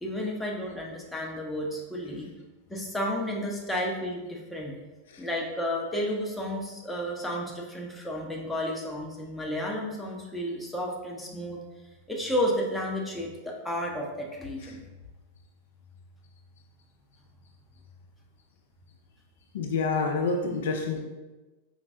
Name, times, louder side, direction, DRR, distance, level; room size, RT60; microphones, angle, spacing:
voice 1, 0.0-2.3 2.7-4.7 5.2-11.6 12.1-14.8, equal, 5° left, -2 dB, 0.7 m, -32 dB
voice 2, 19.5-21.0, left 4 dB, 60° left, 2 dB, 0.4 m, -28 dB
4.5 x 3.0 x 2.6 m, 1.2 s
figure-of-eight pair, 90°, 0 cm